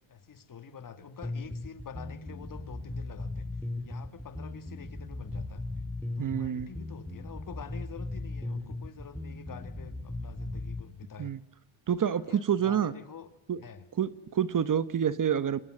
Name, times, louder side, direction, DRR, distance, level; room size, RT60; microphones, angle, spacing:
voice 1, 0.1-3.5 3.8-5.7 6.2-11.3 12.3-13.3 13.6-13.8, left 7 dB, 40° left, 11 dB, 2.3 m, -46 dB
sound 1, 1.2-10.8, left 2 dB, 5° left, 4.9 m, -37 dB
voice 2, 6.2-6.7 11.2-11.4 11.9-12.9 13.5-13.6 14.0-15.6, right 8 dB, 40° right, 14 dB, 1.2 m, -28 dB
28.0 x 26.5 x 7.9 m, 0.71 s
cardioid pair, 135°, 49 cm